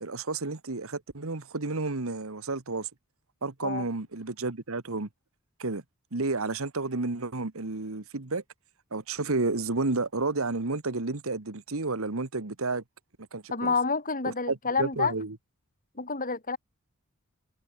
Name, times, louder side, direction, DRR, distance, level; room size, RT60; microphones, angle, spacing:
voice 1, 0.0-2.9 3.4-5.1 5.6-5.8 6.1-8.4 8.9-12.8 13.3-13.7 14.5-15.3, right 3 dB, 65° right, 1.4 m, -31 dB
voice 2, 13.5-15.1 15.9-16.6, left 4 dB, 40° left, 4.5 m, -28 dB
head